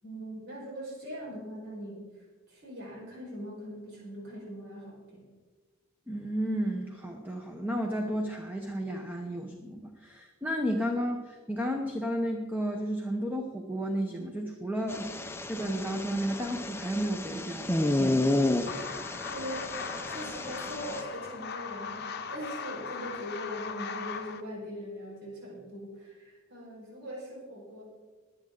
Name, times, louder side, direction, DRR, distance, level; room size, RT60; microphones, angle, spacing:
voice 1, 0.0-2.1 2.5-5.2 19.3-27.8, equal, 50° right, -4 dB, 5.1 m, -41 dB
voice 2, 6.1-18.3, equal, 10° right, 2 dB, 0.9 m, -33 dB
sound 1, 14.9-21.0, left 2 dB, 10° left, 0.6 m, -31 dB
sound 2, 18.7-24.4, left 6 dB, 50° left, 0.8 m, -39 dB
22.0 x 8.6 x 3.9 m, 1.4 s
head